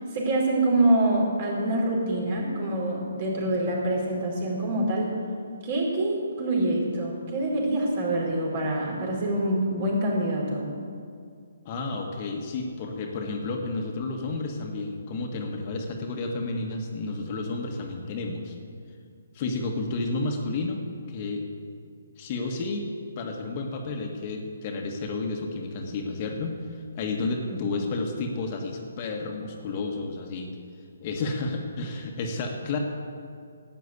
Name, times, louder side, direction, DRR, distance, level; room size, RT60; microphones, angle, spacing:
voice 1, 0.1-5.1 5.6-10.7, right 1 dB, 40° right, -2 dB, 4.4 m, -25 dB
voice 2, 11.6-18.6 19.3-21.5 22.2-22.9 23.1-30.6 31.0-32.8, left 3 dB, 35° left, 2 dB, 1.6 m, -31 dB
12.0 x 9.2 x 8.3 m, 2.3 s
figure-of-eight pair, 140°, 0 cm